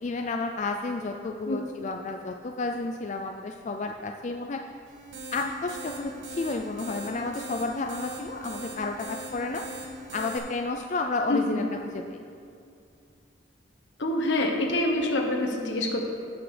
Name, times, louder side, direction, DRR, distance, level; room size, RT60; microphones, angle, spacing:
voice 1, 0.0-4.6 5.3-9.6 10.1-12.2, left 3 dB, 40° left, 3 dB, 0.4 m, -31 dB
sound 1, 4.9-10.4, right 1 dB, 85° right, 1.4 m, -40 dB
voice 2, 11.3-11.6 14.0-16.0, left 1 dB, 75° left, 0 dB, 1.3 m, -26 dB
16.0 x 6.0 x 3.3 m, 2.4 s
head